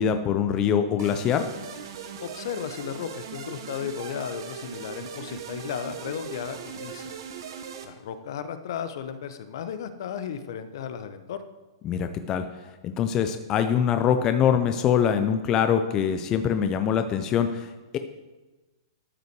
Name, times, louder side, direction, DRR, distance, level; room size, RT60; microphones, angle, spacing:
voice 1, 0.0-1.5 11.8-12.4 12.8-18.0, left 8 dB, 25° left, 8 dB, 0.4 m, -24 dB
sound 1, 1.0-7.8, right 7 dB, 60° right, 1.1 m, -39 dB
voice 2, 2.2-7.2 7.8-11.4, left 8 dB, 60° left, 11 dB, 0.7 m, -35 dB
12.5 x 5.6 x 4.6 m, 1.2 s
hypercardioid pair, 155°, 2 cm